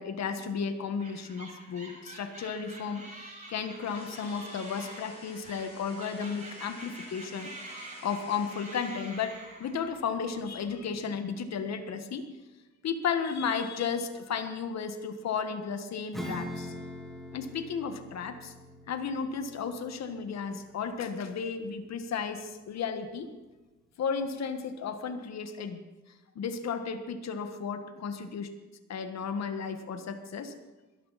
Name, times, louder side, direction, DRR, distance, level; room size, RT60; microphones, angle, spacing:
voice 1, 0.0-7.5 8.0-12.3 12.8-16.7 17.3-18.5 18.9-23.3 24.0-25.8 26.3-28.5 28.9-30.5, left 6 dB, 60° left, 8 dB, 1.6 m, -34 dB
sound 1, 1.0-10.0, right 2 dB, 25° right, 5.3 m, -47 dB
sound 2, 3.8-9.4, left 1 dB, 20° left, 4.5 m, -52 dB
Acoustic guitar / Strum, 16.1-22.1, left 1 dB, ahead, 3.7 m, -43 dB
21.5 x 13.5 x 4.2 m, 1.2 s
cardioid pair, 90°, 30 cm